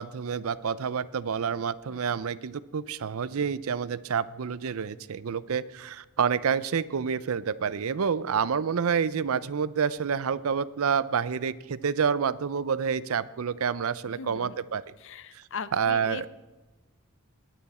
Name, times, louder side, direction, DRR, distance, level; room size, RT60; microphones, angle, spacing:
voice 1, 0.0-14.8 15.3-15.4 15.7-16.3, right 6 dB, 70° right, 17 dB, 0.5 m, -28 dB
voice 2, 14.1-14.6 15.0-16.3, left 5 dB, 60° left, 15 dB, 0.6 m, -40 dB
20.0 x 9.3 x 4.3 m, 1.2 s
head